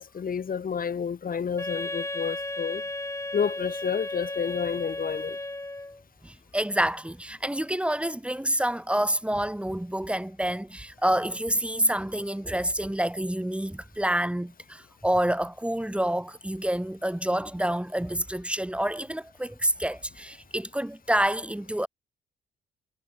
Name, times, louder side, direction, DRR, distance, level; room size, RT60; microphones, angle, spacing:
voice 1, 0.0-2.8 3.3-5.4, left 6 dB, 45° left, 3.9 m, -30 dB
Wind instrument woodwind instrument, 1.6-6.0, left 2 dB, 15° left, 7.2 m, -34 dB
voice 2, 6.2-21.9, right 1 dB, 5° right, 3.6 m, -28 dB
cardioid pair, 90°, 20 cm